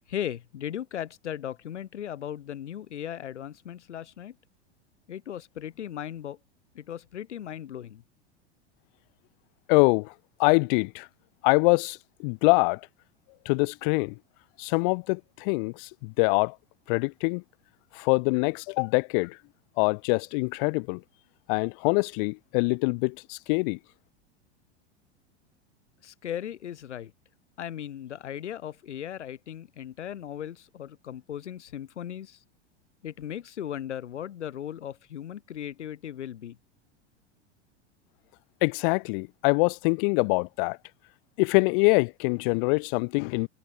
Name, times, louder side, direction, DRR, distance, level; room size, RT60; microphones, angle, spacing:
voice 1, 0.1-4.3 5.1-6.4 6.7-8.0 26.0-27.1 27.6-32.4 33.0-36.6, left 10 dB, 85° left, 1.2 m, -37 dB
voice 2, 9.7-10.1 10.4-11.1 11.4-12.8 13.5-14.1 14.6-16.6 16.9-17.4 17.9-19.4 19.8-21.0 21.5-23.8 38.6-40.8 41.4-43.5, left 33 dB, 50° left, 0.5 m, -24 dB
hypercardioid pair, 95°, 34 cm